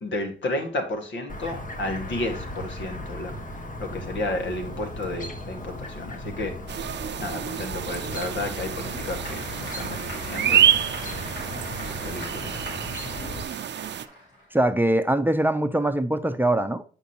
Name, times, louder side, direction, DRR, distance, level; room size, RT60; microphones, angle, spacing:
voice 1, 0.0-10.7 11.5-11.7 12.0-12.8, left 2 dB, 70° left, 1.9 m, -32 dB
Chirp tweet, 1.3-13.4, left 1 dB, 40° left, 1.5 m, -37 dB
sound 1, 6.7-14.1, right 10 dB, 60° right, 0.6 m, -27 dB
Applause / Crowd, 8.1-14.7, equal, 85° left, 3.3 m, -41 dB
voice 2, 14.5-16.8, right 1 dB, 10° right, 0.7 m, -22 dB
8.2 x 5.2 x 3.0 m
supercardioid pair, 50°, 20 cm